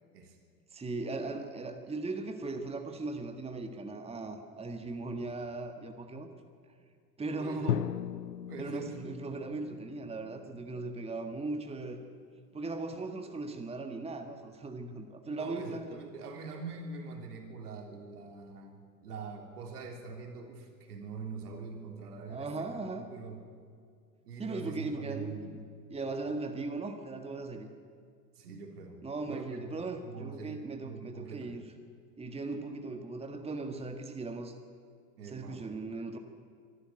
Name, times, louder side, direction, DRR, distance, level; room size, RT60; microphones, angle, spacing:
voice 1, 0.7-6.3 7.2-7.9 8.6-12.0 12.5-16.0 22.3-23.1 24.4-25.6 25.9-27.7 29.0-31.6 32.2-34.5 35.2-36.2, right 3 dB, 10° right, 5 dB, 1.7 m, -38 dB
voice 2, 7.4-7.8 8.5-9.0 15.2-22.7 23.1-23.4 24.2-25.6 28.3-29.0 29.3-31.5 35.2-35.6, right 4 dB, 70° right, 3 dB, 3.3 m, -44 dB
Drum, 7.7-11.5, left 11 dB, 85° left, 0.5 m, -38 dB
25.0 x 12.5 x 9.1 m, 2.2 s
figure-of-eight pair, 80°, 47 cm